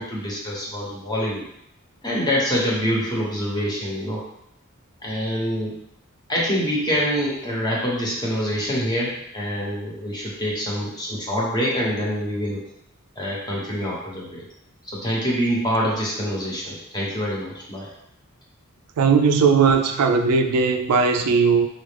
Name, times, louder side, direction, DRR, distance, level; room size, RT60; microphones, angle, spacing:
voice 1, 0.0-1.4 2.0-4.2 5.0-5.7 6.3-12.6 13.2-14.4 14.9-17.9, equal, 20° left, -4 dB, 0.9 m, -25 dB
voice 2, 19.0-21.7, right 5 dB, 85° right, 5 dB, 0.4 m, -18 dB
4.0 x 2.5 x 3.3 m, 0.78 s
head